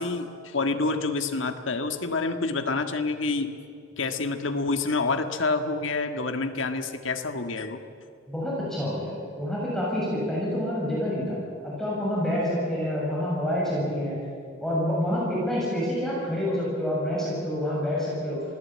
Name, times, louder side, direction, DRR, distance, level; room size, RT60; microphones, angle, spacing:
voice 1, 0.0-3.5 4.0-7.8, left 3 dB, 80° left, 7 dB, 1.7 m, -27 dB
voice 2, 8.3-11.4 11.6-14.2 14.6-18.4, left 1 dB, ahead, -6 dB, 7.1 m, -27 dB
27.0 x 17.5 x 8.7 m, 2.3 s
head